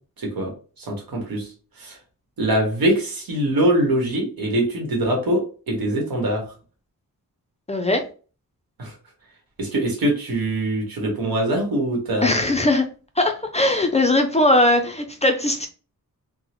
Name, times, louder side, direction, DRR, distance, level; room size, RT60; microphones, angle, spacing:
voice 1, 0.2-0.5 0.8-1.5 1.8-2.0 2.4-6.4 8.8-8.9 9.6-12.4, right 1 dB, 90° right, 1.3 m, -23 dB
voice 2, 7.7-8.0 12.2-12.9 13.2-15.7, left 1 dB, 20° left, 0.3 m, -19 dB
3.6 x 2.0 x 2.9 m
wide cardioid pair, 145°, 35 cm